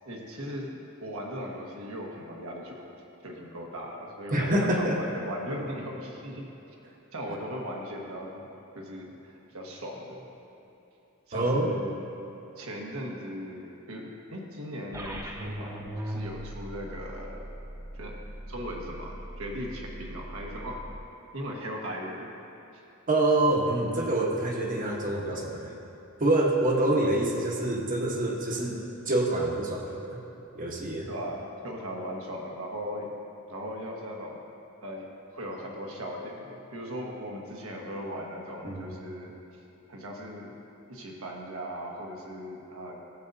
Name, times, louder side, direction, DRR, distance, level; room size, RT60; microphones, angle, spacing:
voice 1, 0.0-2.9 3.2-6.4 7.1-8.5 8.7-10.2 11.3-11.9 12.6-17.4 17.9-18.2 18.5-20.8 21.3-22.3 22.7-22.8 31.1-33.1 33.5-34.4 34.8-35.1 35.3-39.4 39.9-40.6 40.9-43.0, equal, 75° right, -1 dB, 1.4 m, -38 dB
voice 2, 4.3-5.0 11.3-11.7 23.1-25.7 26.2-28.8 29.1-30.2 30.5-31.1 38.6-38.9, right 1 dB, 40° right, -1 dB, 1.1 m, -26 dB
sound 1, 14.9-21.0, right 1 dB, 15° right, 0.6 m, -40 dB
15.0 x 7.9 x 2.7 m, 3.0 s
head